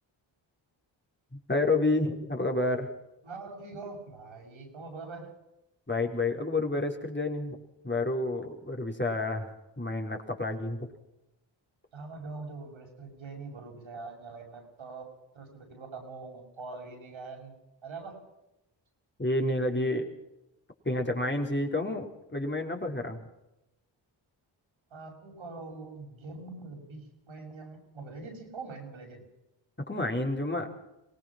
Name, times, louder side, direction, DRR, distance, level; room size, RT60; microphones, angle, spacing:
voice 1, 1.3-2.9 5.9-7.5 7.8-10.9 19.2-20.1 20.8-23.2 29.9-30.7, left 2 dB, 25° left, 2 dB, 4.5 m, -29 dB
voice 2, 3.2-5.3 11.9-17.5 17.8-18.2 24.9-29.2, right 3 dB, 75° right, 1 dB, 6.9 m, -43 dB
24.0 x 18.5 x 6.1 m, 0.92 s
cardioid pair, 50°, 47 cm